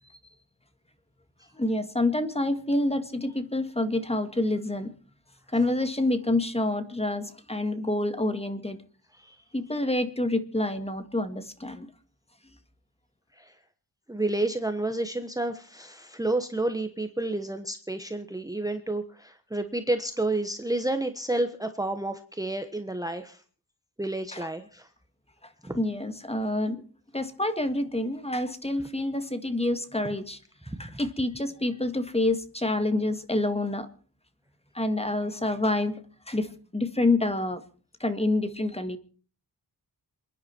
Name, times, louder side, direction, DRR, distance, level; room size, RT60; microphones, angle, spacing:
voice 1, 1.5-4.9 5.5-8.8 9.5-11.9 12.5-12.6 24.3-24.5 25.8-26.8 27.1-30.4 30.8-33.9 34.7-36.0 36.3-37.6 38.0-39.0, left 2 dB, 15° left, 9 dB, 1.9 m, -27 dB
voice 2, 14.1-23.4 24.0-24.9 25.6-25.8 30.8-30.9, right 2 dB, 10° right, 7 dB, 1.2 m, -30 dB
28.0 x 10.5 x 4.5 m, 0.41 s
wide cardioid pair, 135°, 42 cm